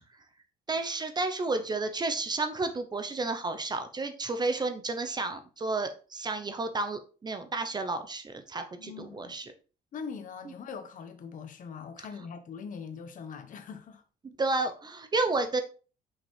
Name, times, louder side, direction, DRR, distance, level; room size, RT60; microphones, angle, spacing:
voice 1, 0.7-9.5 14.2-15.6, right 3 dB, 25° right, 0.7 m, -31 dB
voice 2, 8.8-9.4 9.9-14.0, left 6 dB, 50° left, 1.1 m, -42 dB
5.9 x 4.9 x 3.3 m
cardioid pair, 110°, 17 cm